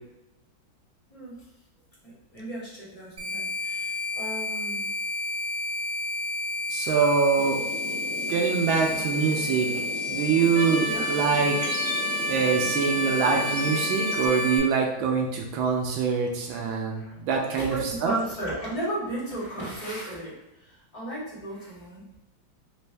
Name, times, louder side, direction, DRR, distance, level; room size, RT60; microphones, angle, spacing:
voice 1, 1.1-1.5 2.0-4.9 10.8-11.1 16.9-17.2 17.5-22.1, right 1 dB, 20° left, -8 dB, 1.3 m, -35 dB
sound 1, 3.2-14.6, left 3 dB, 30° right, 1.5 m, -31 dB
voice 2, 6.7-7.6 8.3-9.7 10.1-11.7 12.3-18.2, right 5 dB, 85° right, 1 dB, 1.4 m, -24 dB
sound 2, 7.4-14.3, left 3 dB, 80° left, 1.4 m, -37 dB
Trumpet, 10.5-14.7, right 3 dB, 65° right, 0.9 m, -32 dB
4.2 x 2.6 x 3.3 m, 0.93 s
omnidirectional pair, 2.2 m